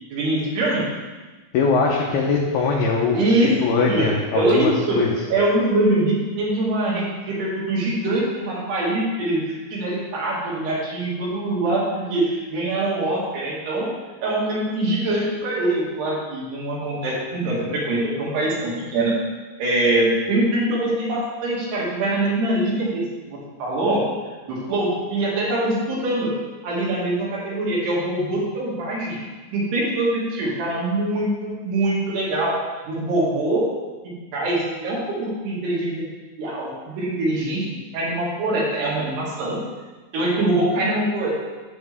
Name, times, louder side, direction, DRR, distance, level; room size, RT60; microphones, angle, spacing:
voice 1, 0.1-0.8 3.1-3.5 3.9-4.1 4.3-5.1 5.3-9.4 9.7-13.9 14.2-19.2 19.6-24.1 24.5-26.3 26.6-29.2 29.5-32.6 32.9-33.7 34.0-36.0 36.4-39.6 40.1-41.3, right 1 dB, 65° right, -5 dB, 4.2 m, -23 dB
voice 2, 1.5-3.3 3.6-5.2, left 4 dB, 75° left, -2 dB, 2.4 m, -21 dB
10.5 x 8.7 x 3.5 m, 1.3 s
omnidirectional pair, 5.4 m